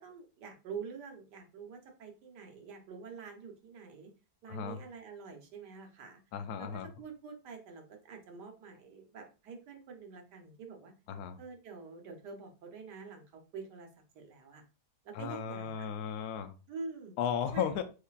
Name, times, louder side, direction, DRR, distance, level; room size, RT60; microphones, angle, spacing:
voice 1, 0.0-4.1 4.4-6.2 6.6-6.7 7.0-10.9 11.4-13.9 14.1-14.6 15.0-15.9 16.7-17.2 17.5-17.7, right 5 dB, 80° right, 3 dB, 1.5 m, -46 dB
voice 2, 4.5-4.8 6.3-6.9 11.1-11.4 15.1-16.5 17.2-17.8, left 8 dB, 75° left, 8 dB, 1.0 m, -35 dB
6.5 x 2.7 x 2.4 m, 0.32 s
omnidirectional pair, 1.8 m